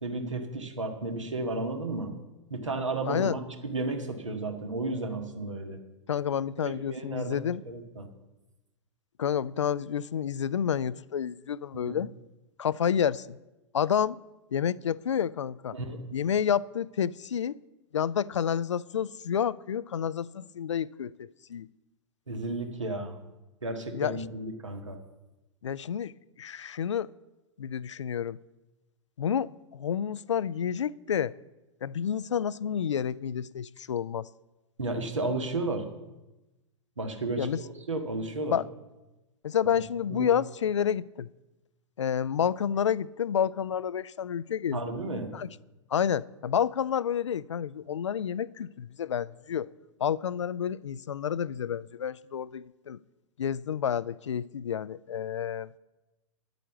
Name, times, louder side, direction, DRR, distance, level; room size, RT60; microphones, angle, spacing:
voice 1, 0.0-2.1 2.5-5.8 6.6-7.4 7.7-8.1 11.7-12.0 15.7-16.0 22.3-23.2 23.6-25.0 34.8-35.9 37.0-38.6 40.1-40.3 44.7-45.3, right 2 dB, 75° right, 1.7 m, -33 dB
voice 2, 3.1-3.4 6.1-7.6 9.2-12.1 12.6-13.4 13.7-14.2 14.5-15.8 16.1-17.5 17.9-21.7 23.9-24.2 25.6-27.1 27.6-28.4 29.2-31.3 31.8-34.3 37.4-37.6 38.5-38.6 39.4-41.3 42.0-44.8 45.3-45.5 45.9-49.7 50.0-53.0 53.4-55.7, left 8 dB, 70° left, 0.4 m, -29 dB
10.0 x 9.0 x 7.0 m
figure-of-eight pair, 100°, 16 cm